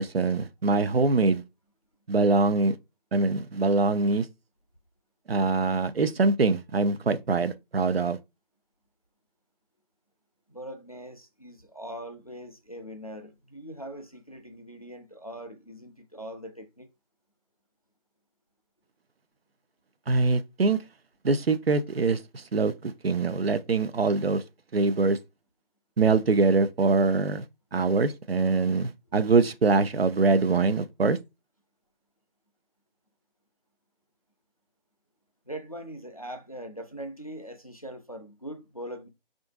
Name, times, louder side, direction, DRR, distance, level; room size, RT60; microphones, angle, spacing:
voice 1, 0.0-1.4 2.1-2.8 3.1-4.3 5.3-8.2 20.1-20.8 21.2-24.4 24.7-25.2 26.0-27.4 27.7-31.2, right 3 dB, 90° right, 0.5 m, -23 dB
voice 2, 10.5-16.9 35.5-39.1, right 1 dB, 40° left, 0.4 m, -41 dB
3.6 x 2.5 x 2.3 m
figure-of-eight pair, 165°, 29 cm